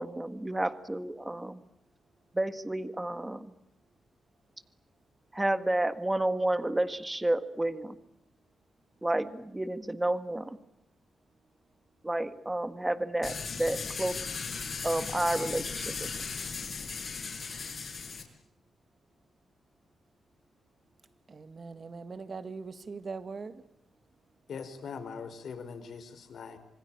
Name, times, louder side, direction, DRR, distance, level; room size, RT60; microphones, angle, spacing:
voice 1, 0.0-1.6 2.3-3.5 5.3-8.0 9.0-10.6 12.0-14.2 14.8-16.1, right 1 dB, 10° right, 1.7 m, -31 dB
sound 1, 13.2-18.2, left 5 dB, 45° left, 5.5 m, -37 dB
voice 2, 21.3-23.6, right 4 dB, 40° right, 1.9 m, -41 dB
voice 3, 24.5-26.6, left 6 dB, 65° left, 4.5 m, -41 dB
27.0 x 24.0 x 8.9 m
wide cardioid pair, 130°, 0 cm